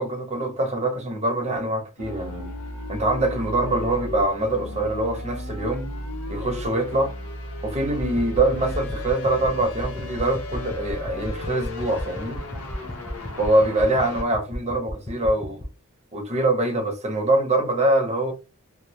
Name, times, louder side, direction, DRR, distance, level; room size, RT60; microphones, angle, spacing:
voice 1, 0.0-2.5 2.9-5.9 6.3-7.1 7.6-12.4 13.4-15.7 16.1-18.3, right 1 dB, 30° right, 0.7 m, -24 dB
sound 1, 2.0-14.2, left 1 dB, 75° left, 0.6 m, -34 dB
sound 2, 7.9-15.7, left 1 dB, 10° left, 0.3 m, -36 dB
2.2 x 2.1 x 2.7 m
head